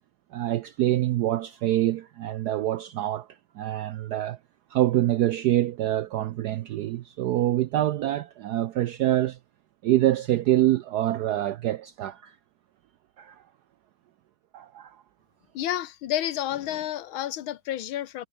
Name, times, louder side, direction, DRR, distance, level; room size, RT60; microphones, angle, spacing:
voice 1, 0.3-3.3 3.6-4.4 4.7-9.4 9.8-12.4 13.2-13.4 14.5-15.0, right 13 dB, 80° right, 0.9 m, -25 dB
voice 2, 15.5-18.3, left 12 dB, 80° left, 1.7 m, -30 dB
omnidirectional pair, 2.3 m